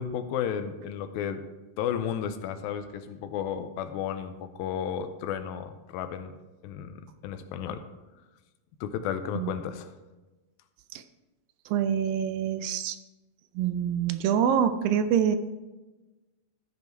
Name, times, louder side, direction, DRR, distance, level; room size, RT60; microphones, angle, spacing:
voice 1, 0.0-1.4 1.8-6.4 6.6-7.9 8.8-9.9, left 8 dB, 85° left, 9 dB, 2.4 m, -33 dB
voice 2, 11.7-13.0 13.6-15.4, right 8 dB, 80° right, 10 dB, 2.1 m, -25 dB
14.5 x 5.4 x 4.5 m, 1.1 s
omnidirectional pair, 4.2 m